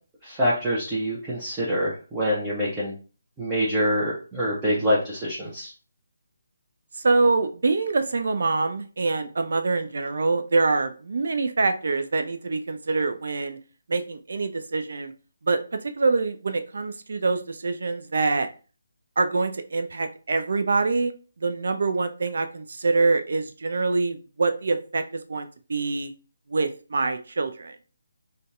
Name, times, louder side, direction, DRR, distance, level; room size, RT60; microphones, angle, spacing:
voice 1, 0.2-2.9 3.4-5.7, equal, 10° right, -7 dB, 0.6 m, -25 dB
voice 2, 7.0-13.6 13.9-15.1 15.4-15.6 16.0-18.5 19.2-21.1 21.4-25.0 25.3-26.1 26.5-27.8, right 3 dB, 55° right, 7 dB, 0.4 m, -25 dB
3.8 x 2.2 x 2.4 m, 0.36 s
figure-of-eight pair, 145°, 0 cm